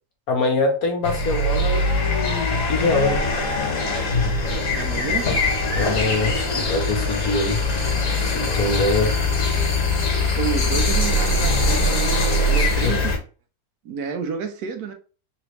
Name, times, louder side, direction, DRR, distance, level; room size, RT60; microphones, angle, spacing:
voice 1, 0.3-3.3 5.8-7.6 8.2-9.1 12.6-12.9, left 3 dB, 75° left, 1.6 m, -24 dB
sound 1, 1.0-13.2, left 2 dB, 60° left, 1.8 m, -22 dB
voice 2, 4.7-5.4 10.4-13.2 13.8-14.9, right 6 dB, 80° right, 1.2 m, -29 dB
3.9 x 3.0 x 3.1 m
omnidirectional pair, 1.6 m